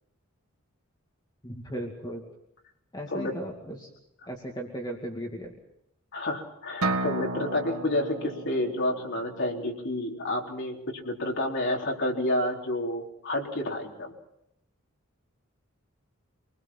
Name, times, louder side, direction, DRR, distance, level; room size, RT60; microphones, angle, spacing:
voice 1, 1.4-2.2 2.9-3.9 4.3-5.6, equal, 20° left, 0 dB, 2.4 m, -36 dB
voice 2, 6.1-14.1, left 1 dB, 55° left, 0 dB, 3.9 m, -30 dB
sound 1, 6.8-10.6, right 2 dB, 85° right, 1.7 m, -34 dB
26.5 x 20.5 x 5.8 m, 0.78 s
head